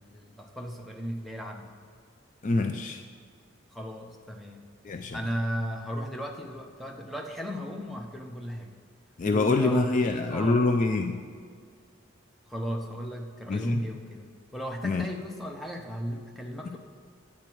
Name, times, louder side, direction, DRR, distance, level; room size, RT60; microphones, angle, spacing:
voice 1, 0.0-1.7 3.7-4.6 5.1-8.7 9.3-10.6 12.5-16.8, equal, ahead, 1 dB, 0.7 m, -36 dB
voice 2, 2.4-3.0 4.8-5.2 9.2-11.2 13.5-13.8 14.8-15.1 16.6-16.7, left 3 dB, 35° left, 6 dB, 0.3 m, -25 dB
10.0 x 8.5 x 4.5 m, 2.1 s
head